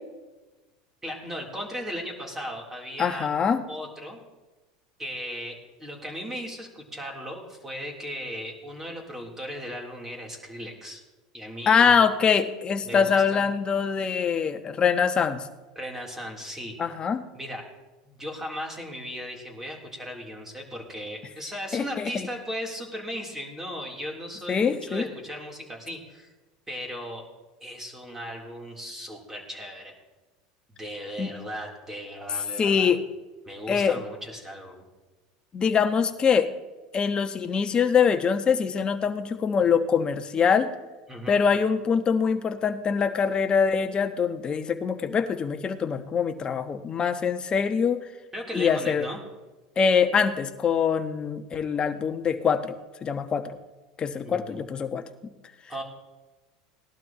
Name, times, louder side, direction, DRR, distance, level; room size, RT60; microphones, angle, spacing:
voice 1, 1.0-3.3 3.7-4.2 5.0-11.0 11.3-12.1 12.8-13.5 15.8-16.8 17.3-17.6 18.0-26.3 26.7-27.2 27.6-29.9 30.7-32.9 33.5-34.9 41.1-41.4 48.3-49.2 54.2-54.6 55.7-55.8, equal, 15° right, 0 dB, 3.6 m, -37 dB
voice 2, 3.0-3.6 11.7-15.5 16.8-17.2 21.7-22.1 24.5-25.1 31.2-31.3 32.6-33.0 33.7-34.0 35.5-36.5 36.9-40.7 41.3-48.0 48.5-49.1 49.8-52.7 53.0-53.6 54.0-55.0, left 6 dB, 30° left, 8 dB, 1.1 m, -24 dB
19.0 x 12.0 x 3.1 m, 1.2 s
hypercardioid pair, 90°, 3 cm